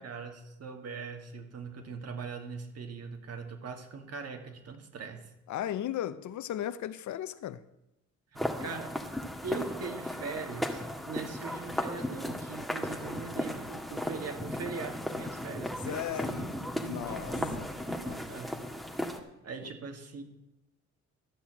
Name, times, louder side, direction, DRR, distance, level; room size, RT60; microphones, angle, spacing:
voice 1, 0.0-5.2 8.3-8.9 9.4-15.9 16.2-17.6 17.9-18.6 19.4-20.2, right 4 dB, 55° right, 2.4 m, -41 dB
voice 2, 5.5-7.6 15.8-16.5 16.8-17.7, left 11 dB, 70° left, 0.8 m, -36 dB
sound 1, 8.4-19.2, left 1 dB, ahead, 1.7 m, -36 dB
13.0 x 5.9 x 9.0 m
cardioid pair, 90°, 30 cm